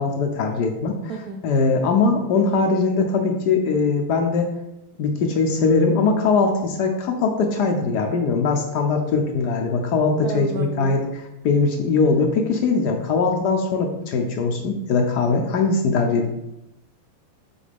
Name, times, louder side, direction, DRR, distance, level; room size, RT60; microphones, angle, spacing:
voice 1, 0.0-4.5 5.0-16.3, left 4 dB, 70° left, 4 dB, 1.0 m, -21 dB
voice 2, 1.1-1.4 10.2-11.0, right 3 dB, 75° right, 2 dB, 0.8 m, -31 dB
7.5 x 4.2 x 3.4 m, 0.88 s
omnidirectional pair, 2.3 m